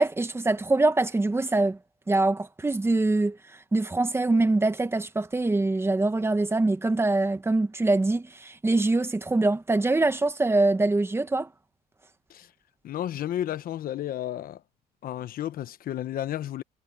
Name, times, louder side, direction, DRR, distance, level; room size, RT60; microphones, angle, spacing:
voice 1, 0.0-1.8 2.1-3.4 3.7-11.5, right 2 dB, 15° right, 1.5 m, -24 dB
voice 2, 12.8-14.6 15.0-16.6, left 12 dB, 60° left, 1.0 m, -32 dB
cardioid pair, 110°, 17 cm